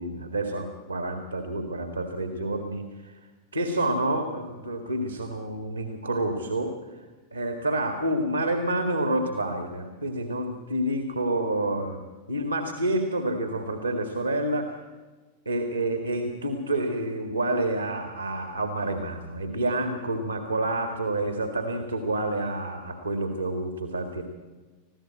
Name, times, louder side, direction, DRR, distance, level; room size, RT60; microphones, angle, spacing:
voice 1, 0.0-3.1 3.5-6.8 7.3-12.0 12.3-14.8 15.5-24.2, right 1 dB, 85° right, 6 dB, 1.9 m, -28 dB
21.5 x 14.5 x 8.7 m, 1.3 s
figure-of-eight pair, 90°, 0 cm